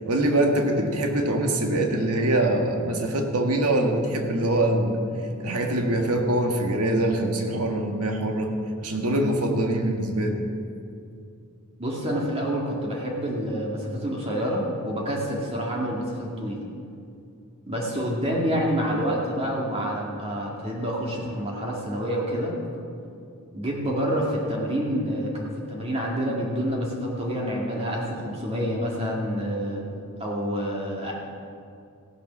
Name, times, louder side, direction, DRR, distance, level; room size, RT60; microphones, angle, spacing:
voice 1, 0.0-5.0 5.4-8.5 8.8-10.4, right 1 dB, 90° right, 3 dB, 1.8 m, -24 dB
voice 2, 11.8-16.6 17.7-22.6 23.5-29.8 30.2-31.1, equal, 25° right, -3 dB, 2.0 m, -28 dB
15.5 x 10.0 x 6.2 m, 2.5 s
head